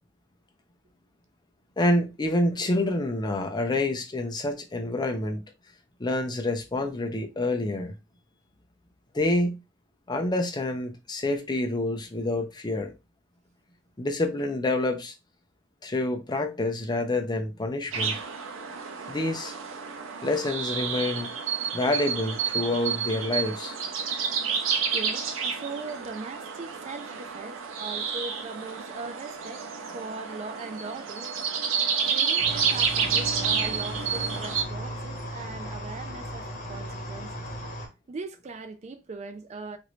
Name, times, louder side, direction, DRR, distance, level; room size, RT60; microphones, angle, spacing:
voice 1, 1.8-5.4 6.0-7.9 9.1-9.6 10.1-12.9 14.0-15.1 15.8-18.2 19.1-19.5 20.2-21.3 21.7-23.7, left 2 dB, 20° left, 0.5 m, -27 dB
sound 1, 17.9-34.6, right 6 dB, 80° right, 0.6 m, -30 dB
voice 2, 24.9-29.7 29.9-31.3 32.0-37.4 38.1-39.8, right 3 dB, 35° right, 0.4 m, -40 dB
sound 2, 32.4-37.9, equal, 45° left, 1.0 m, -36 dB
3.0 x 2.6 x 3.1 m
head